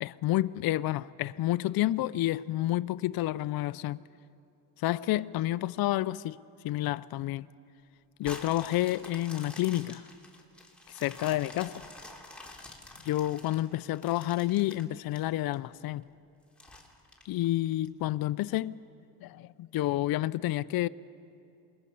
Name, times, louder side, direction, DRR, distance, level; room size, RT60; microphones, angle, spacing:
voice 1, 0.0-4.0 4.8-6.4 6.6-7.5 8.2-10.1 10.9-11.8 13.0-16.0 17.3-18.8 19.2-20.9, left 15 dB, 60° left, 0.5 m, -29 dB
sound 1, 8.2-15.5 16.0-16.1 16.6-17.9 18.4-18.5, left 2 dB, 5° left, 3.1 m, -48 dB
27.5 x 21.0 x 5.5 m
cardioid pair, 90°, 41 cm